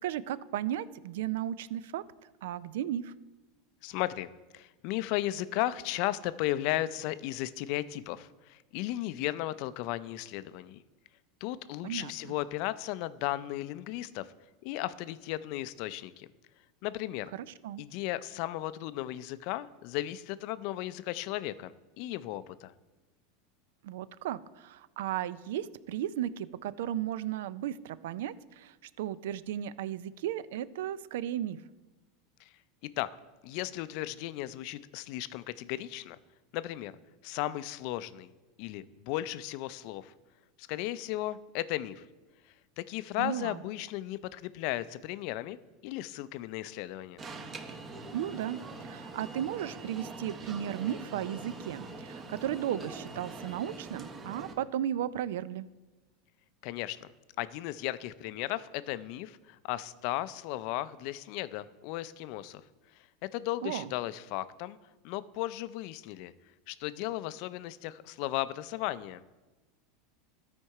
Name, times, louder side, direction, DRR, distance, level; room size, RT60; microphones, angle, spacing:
voice 1, 0.0-2.0 2.4-3.1 11.8-12.3 17.6-17.8 23.8-31.6 43.2-43.6 48.1-55.7 63.6-63.9, right 11 dB, 80° right, 17 dB, 0.4 m, -35 dB
voice 2, 3.8-10.8 11.4-14.3 14.6-16.3 16.8-17.3 17.8-22.7 32.4-32.5 33.0-33.1 33.4-36.2 36.5-36.9 37.2-38.3 38.6-40.1 40.6-42.1 42.8-45.6 45.8-47.2 56.6-57.1 57.4-62.6 62.9-64.8 65.0-66.3 66.7-69.2, left 15 dB, 60° left, 15 dB, 0.4 m, -35 dB
Alarm, 47.2-54.5, right 3 dB, 30° right, 1.0 m, -43 dB
13.0 x 4.4 x 4.8 m, 1.2 s
supercardioid pair, 120°, 0 cm